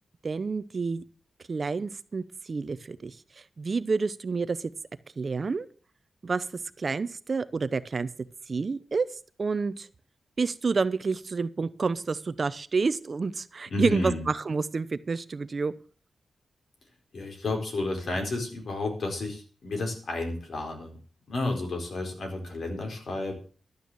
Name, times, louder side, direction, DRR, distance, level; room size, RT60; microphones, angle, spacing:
voice 1, 0.2-1.0 1.5-3.2 3.6-4.7 5.2-5.7 6.2-6.5 6.8-8.1 8.5-9.1 9.4-9.9 10.4-15.7, right 4 dB, 40° right, 15 dB, 0.7 m, -29 dB
voice 2, 13.7-14.2 17.1-21.0 21.3-23.3, left 2 dB, 60° left, 3 dB, 4.5 m, -31 dB
12.0 x 9.2 x 6.9 m, 0.40 s
wide cardioid pair, 140°, 0 cm